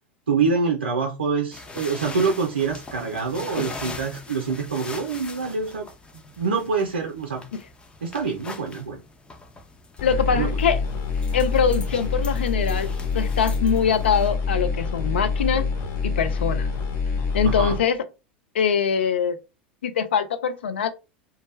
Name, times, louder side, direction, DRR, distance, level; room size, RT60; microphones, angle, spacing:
voice 1, 0.3-5.9 6.1-7.4 8.0-9.0 10.3-10.5 17.4-17.7, right 5 dB, 85° right, 0.4 m, -25 dB
sound 1, 1.5-14.3, left 3 dB, 15° left, 0.5 m, -41 dB
voice 2, 10.0-10.8 11.3-15.7 16.0-16.7 17.3-18.0 18.5-19.4 19.8-20.9, left 6 dB, 75° left, 0.4 m, -23 dB
sound 2, 10.0-17.8, left 5 dB, 50° left, 0.9 m, -26 dB
2.3 x 2.0 x 3.2 m
figure-of-eight pair, 85°, 6 cm